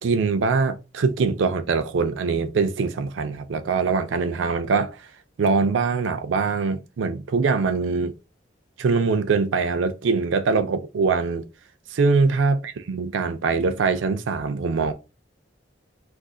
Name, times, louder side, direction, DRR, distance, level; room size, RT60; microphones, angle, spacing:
voice 1, 0.0-5.1 5.4-8.1 8.8-11.5 11.9-14.9, right 4 dB, 85° right, 0.4 m, -23 dB
2.4 x 2.4 x 3.6 m
head